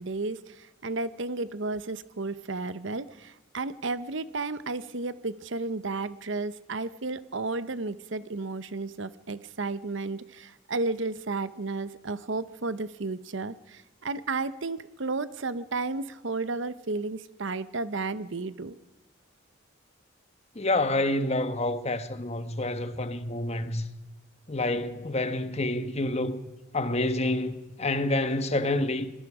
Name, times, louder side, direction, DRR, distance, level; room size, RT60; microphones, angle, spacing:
voice 1, 0.0-18.8, right 3 dB, 65° right, 0.9 m, -33 dB
voice 2, 20.5-23.8 24.5-26.4 26.7-29.1, left 2 dB, 30° left, 1.2 m, -28 dB
26.5 x 20.0 x 4.9 m
head